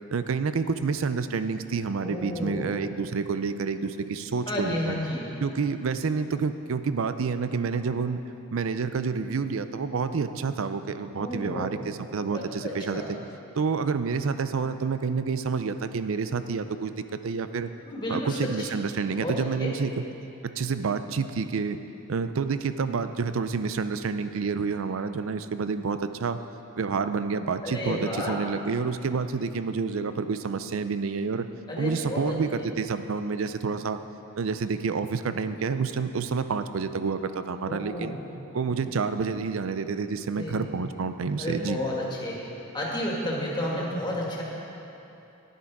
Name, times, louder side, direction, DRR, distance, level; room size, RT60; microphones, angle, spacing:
voice 1, 0.1-5.0 5.4-8.2 8.5-13.2 13.6-16.9 17.2-17.7 18.1-20.0 20.4-21.8 22.1-26.4 26.8-31.5 31.8-34.0 34.4-38.1 38.5-41.8, right 5 dB, 75° right, 11 dB, 0.5 m, -28 dB
voice 2, 2.0-2.7 4.5-5.3 11.1-11.7 12.3-13.0 17.8-18.5 19.2-19.7 27.6-28.4 31.7-32.7 37.6-38.2 40.3-40.7 41.4-42.4 42.7-44.4, left 1 dB, 20° left, -4 dB, 2.0 m, -31 dB
12.0 x 10.5 x 4.7 m, 2.9 s
head